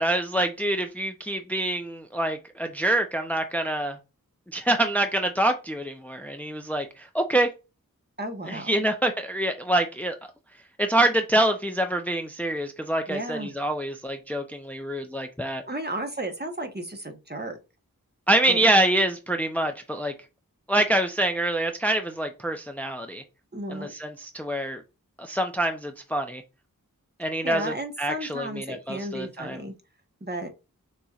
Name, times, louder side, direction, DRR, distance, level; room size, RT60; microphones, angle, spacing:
voice 1, 0.0-4.0 4.5-7.5 8.5-10.2 10.8-15.6 18.3-20.1 20.7-23.2 23.7-24.8 25.2-26.4 27.2-27.7 28.0-29.6, right 1 dB, 5° left, 0.6 m, -26 dB
voice 2, 8.2-8.7 13.1-13.5 15.7-17.6 18.5-18.6 23.5-23.9 27.4-29.7 30.2-30.5, right 1 dB, 30° right, 1.1 m, -33 dB
6.7 x 3.1 x 2.4 m
wide cardioid pair, 45°, 35 cm